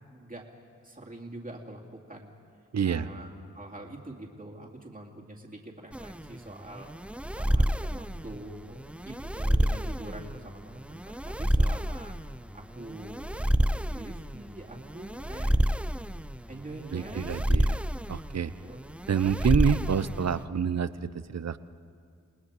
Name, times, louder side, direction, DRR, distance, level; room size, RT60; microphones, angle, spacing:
voice 1, 0.1-0.5 0.8-2.4 2.8-3.3 3.5-6.9 7.3-12.2 12.5-15.8 16.5-17.6 18.6-18.8, right 1 dB, 25° right, -2 dB, 2.4 m, -45 dB
voice 2, 2.7-3.1 16.9-17.8 18.1-18.5 19.1-21.6, right 7 dB, 55° right, 14 dB, 0.7 m, -27 dB
sound 1, 5.9-20.4, right 1 dB, 5° right, 0.4 m, -29 dB
28.5 x 19.5 x 4.8 m, 2.2 s
cardioid pair, 60°, 32 cm